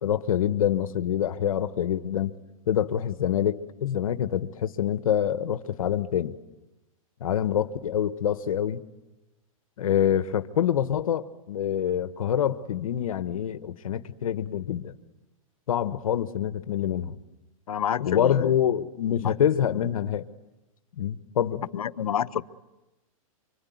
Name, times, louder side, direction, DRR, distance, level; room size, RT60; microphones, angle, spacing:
voice 1, 0.0-2.3 2.7-6.4 7.2-8.8 9.8-14.9 15.7-17.2 18.0-20.2 21.0-21.6, left 9 dB, 70° left, 11 dB, 1.3 m, -26 dB
voice 2, 17.7-18.6 19.2-19.3 21.7-22.4, left 9 dB, 90° left, 15 dB, 1.1 m, -28 dB
25.5 x 25.0 x 9.4 m, 1.0 s
hypercardioid pair, 155°, 18 cm